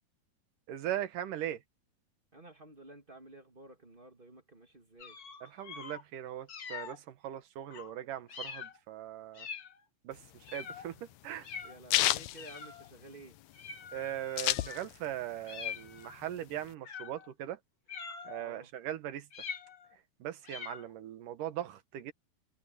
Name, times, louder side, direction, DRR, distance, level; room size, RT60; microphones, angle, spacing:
voice 1, 0.7-1.6 5.4-9.5 10.0-11.5 13.9-17.6 18.2-19.3 20.2-22.1, right 12 dB, 70° right, 2.8 m, -40 dB
voice 2, 2.3-5.2 11.6-13.4 18.4-18.7, right 1 dB, 20° right, 1.6 m, -53 dB
sound 1, 5.0-6.0 6.5-7.0 7.7-7.9 8.3-8.8 9.3-9.8 10.4-10.9 11.4-11.8 12.4-12.9 13.5-14.9 15.5-16.2 16.8-17.3 17.9-18.5 19.3-19.9 20.4-20.9, left 6 dB, 55° left, 1.0 m, -44 dB
sound 2, 10.2-13.3 13.7-13.8 13.9-15.2 15.6-16.7, left 15 dB, 75° left, 1.7 m, -31 dB
omnidirectional pair, 4.0 m